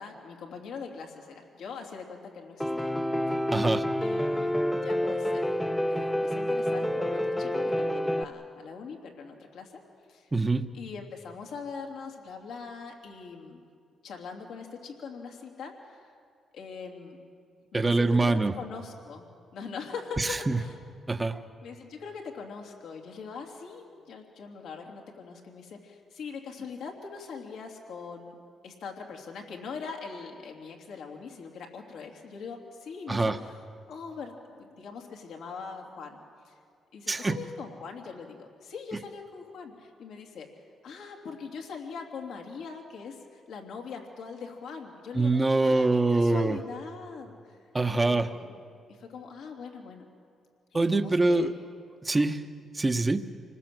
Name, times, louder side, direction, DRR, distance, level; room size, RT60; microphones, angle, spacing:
voice 1, 0.0-2.9 3.3-3.4 4.0-5.5 5.8-9.8 10.1-10.3 10.7-13.7 14.0-16.1 16.5-17.2 17.7-19.3 19.5-20.8 21.6-28.3 28.6-36.2 36.4-36.6 36.9-40.5 40.8-47.6 47.9-48.6 48.9-50.1 50.7-51.5, left 5 dB, 80° left, 1 dB, 3.0 m, -42 dB
Piano, 2.6-8.2, left 1 dB, 5° left, 0.9 m, -28 dB
voice 2, 3.5-3.8 10.3-10.6 17.7-18.5 21.1-21.4 33.1-33.4 37.1-37.4 45.2-46.6 47.7-48.3 50.7-51.5 52.0-52.4 52.8-53.2, right 2 dB, 20° right, 8 dB, 1.1 m, -24 dB
26.5 x 19.5 x 7.8 m, 2.3 s
cardioid pair, 80°, 0 cm